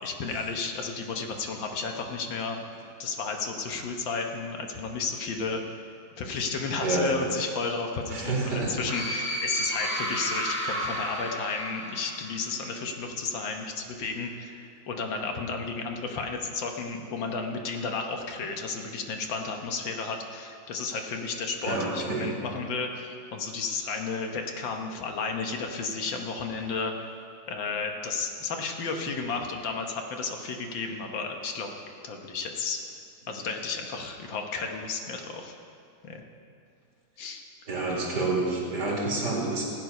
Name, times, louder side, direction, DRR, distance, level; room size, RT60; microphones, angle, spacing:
voice 1, 0.0-2.6 3.0-5.6 6.2-26.9 27.5-31.7 32.0-32.8 33.3-35.6 36.0-36.2 37.2-37.4, left 4 dB, 75° left, 3 dB, 1.8 m, -33 dB
voice 2, 6.8-7.2 8.1-8.8 21.6-22.4 37.7-39.6, right 3 dB, 60° right, -3 dB, 2.9 m, -28 dB
sound 1, 8.8-12.5, equal, 40° left, 4.0 m, -32 dB
15.5 x 9.4 x 5.3 m, 2.4 s
omnidirectional pair, 2.1 m